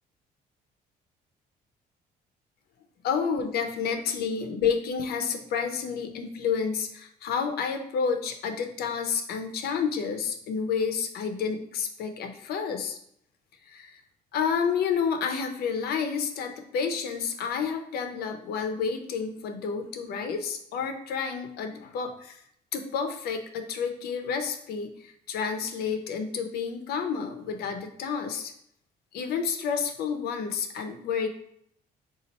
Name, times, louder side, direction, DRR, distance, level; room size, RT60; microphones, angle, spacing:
voice 1, 3.0-13.0 13.7-14.0 14.3-22.4 22.7-28.5 29.1-31.3, left 6 dB, 65° left, 6 dB, 0.6 m, -30 dB
4.1 x 2.4 x 4.1 m, 0.70 s
cardioid pair, 110°, 17 cm